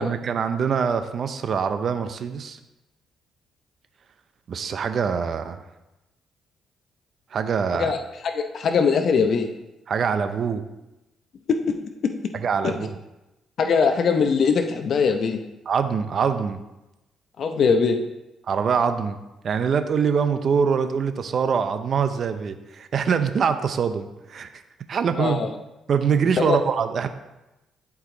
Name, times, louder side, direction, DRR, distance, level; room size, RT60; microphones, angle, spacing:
voice 1, 0.0-2.6 4.5-5.6 7.3-7.9 9.9-10.6 12.4-12.9 15.7-16.6 18.5-19.2 19.4-24.6 24.9-25.4 25.9-27.1, right 6 dB, 55° right, 9 dB, 0.6 m, -24 dB
voice 2, 7.7-9.5 12.6-12.8 13.6-15.4 17.4-18.0 25.2-25.5 26.4-26.6, left 5 dB, 60° left, 6 dB, 0.7 m, -21 dB
11.5 x 4.8 x 3.9 m, 0.95 s
cardioid pair, 90°, 0 cm